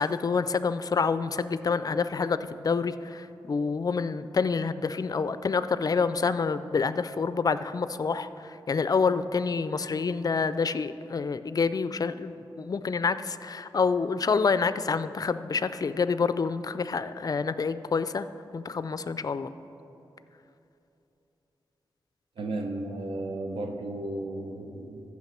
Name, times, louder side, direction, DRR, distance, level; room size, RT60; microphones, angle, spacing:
voice 1, 0.0-18.3 18.5-19.5, left 5 dB, 45° left, 13 dB, 0.4 m, -27 dB
voice 2, 22.4-25.0, right 2 dB, 85° right, 3 dB, 0.8 m, -34 dB
15.0 x 5.9 x 4.4 m, 2.9 s
cardioid pair, 70°, 9 cm